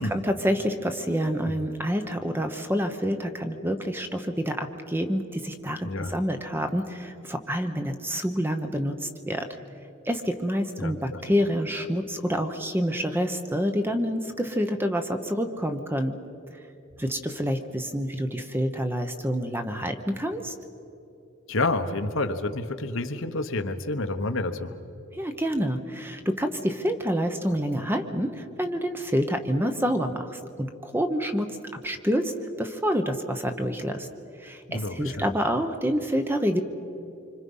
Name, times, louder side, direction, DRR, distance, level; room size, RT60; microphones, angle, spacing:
voice 1, 0.1-9.5 10.0-16.1 17.0-20.6 25.1-31.5 31.8-32.3 32.6-34.1 34.3-36.6, equal, 10° right, 7 dB, 0.9 m, -27 dB
voice 2, 5.8-6.1 10.8-11.2 21.5-24.7 34.7-35.3, left 2 dB, 60° left, 7 dB, 1.1 m, -29 dB
26.5 x 25.5 x 5.5 m, 2.9 s
head